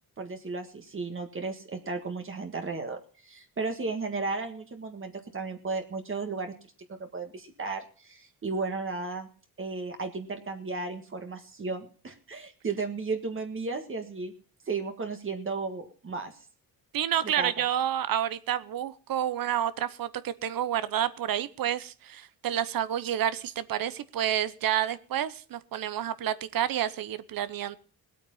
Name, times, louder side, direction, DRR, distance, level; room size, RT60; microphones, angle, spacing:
voice 1, 0.2-6.5 7.0-9.3 9.6-14.3 14.7-16.3 17.2-17.5, right 4 dB, 35° right, 5 dB, 1.7 m, -34 dB
voice 2, 16.9-27.8, right 10 dB, 65° right, 15 dB, 0.9 m, -29 dB
18.5 x 8.5 x 5.5 m, 0.41 s
cardioid pair, 115°, 37 cm